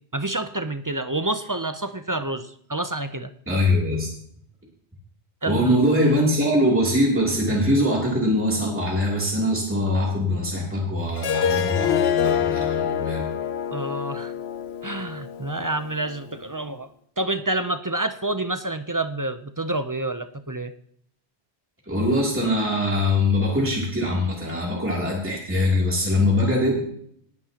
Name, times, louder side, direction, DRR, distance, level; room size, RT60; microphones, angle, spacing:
voice 1, 0.1-3.3 5.4-5.8 13.7-14.3 14.8-16.9 17.2-20.7, right 2 dB, 30° right, 9 dB, 0.4 m, -28 dB
voice 2, 3.5-4.1 5.5-13.2 21.9-26.8, left 1 dB, 10° right, -4 dB, 2.8 m, -22 dB
Harp, 11.2-16.3, left 8 dB, 75° left, 1.0 m, -26 dB
18.5 x 10.5 x 2.9 m, 0.65 s
omnidirectional pair, 1.1 m